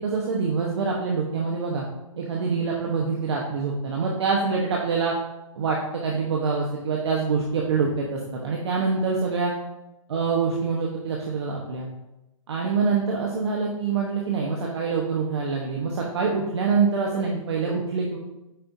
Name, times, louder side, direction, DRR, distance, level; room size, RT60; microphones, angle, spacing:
voice 1, 0.0-1.8 2.2-5.1 5.5-5.8 6.0-9.5 10.1-11.9 12.5-18.2, right 5 dB, 50° right, -2 dB, 1.1 m, -25 dB
8.7 x 5.4 x 2.7 m, 0.94 s
hypercardioid pair, 170°, 18 cm